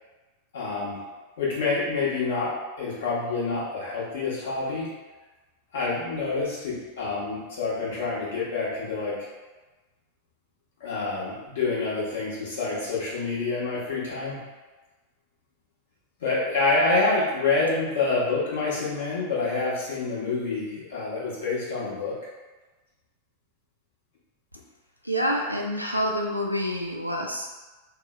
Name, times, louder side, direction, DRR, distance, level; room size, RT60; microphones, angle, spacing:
voice 1, 0.5-1.0 1.4-4.9 5.7-9.2 10.8-14.4 16.2-22.2, left 3 dB, 60° left, -6 dB, 0.9 m, -27 dB
voice 2, 25.0-27.5, equal, 90° left, 1 dB, 0.3 m, -27 dB
3.5 x 2.0 x 2.3 m, 1.2 s
figure-of-eight pair, 90°, 0 cm